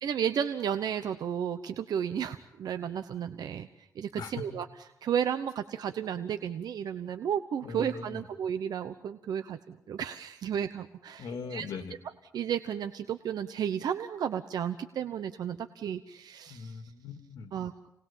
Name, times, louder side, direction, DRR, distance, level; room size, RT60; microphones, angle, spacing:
voice 1, 0.0-3.7 4.0-4.7 5.0-11.7 12.3-16.8 17.5-17.9, right 8 dB, 80° right, 9 dB, 0.9 m, -33 dB
voice 2, 7.6-8.3 11.2-12.0 16.5-17.5, left 5 dB, 80° left, 6 dB, 2.4 m, -40 dB
28.5 x 19.5 x 7.4 m, 0.90 s
wide cardioid pair, 155°, 7 cm